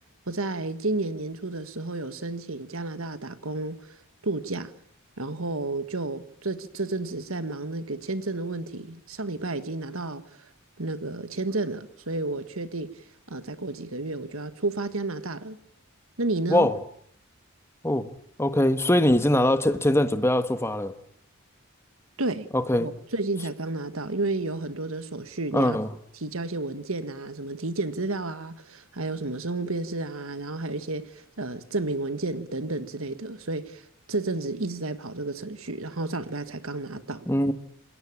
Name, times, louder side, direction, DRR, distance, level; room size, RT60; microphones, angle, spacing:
voice 1, 0.3-3.9 4.2-4.7 5.2-10.2 10.8-12.9 13.3-15.6 16.2-16.7 22.2-22.5 22.8-25.8 26.2-33.8 34.1-37.3, right 2 dB, 65° right, 1.7 m, -31 dB
voice 2, 17.8-20.9 22.5-22.9 25.5-25.9 37.3-37.5, left 1 dB, 10° left, 1.5 m, -22 dB
27.5 x 21.5 x 8.7 m
head